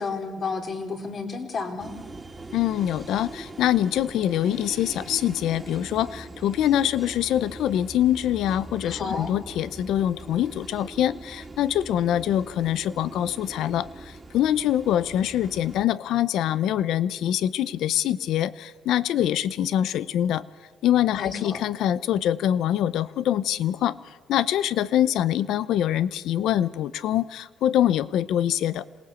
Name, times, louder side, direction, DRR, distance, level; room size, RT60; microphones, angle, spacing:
voice 1, 0.0-1.9 8.8-9.3 21.2-21.6, left 4 dB, 50° left, 4 dB, 3.8 m, -31 dB
sound 1, 1.8-15.9, right 2 dB, 20° right, 2.5 m, -42 dB
voice 2, 2.5-20.4 20.8-24.0 24.3-28.9, left 11 dB, 85° left, 18 dB, 0.8 m, -24 dB
27.0 x 19.0 x 8.3 m, 1.4 s
cardioid pair, 90°, 0 cm